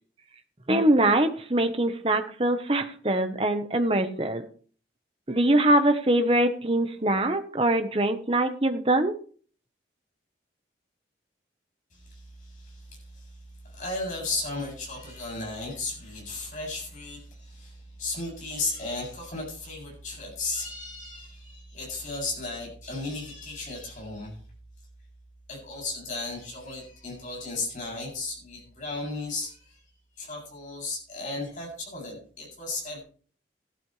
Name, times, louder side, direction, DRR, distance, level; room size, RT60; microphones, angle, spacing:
voice 1, 0.7-4.5 5.3-9.1, right 1 dB, 30° right, 7 dB, 1.2 m, -23 dB
voice 2, 11.9-13.3 13.7-24.4 25.5-29.8 30.2-33.0, left 3 dB, 45° left, -2 dB, 7.9 m, -35 dB
14.5 x 12.5 x 3.4 m, 0.43 s
head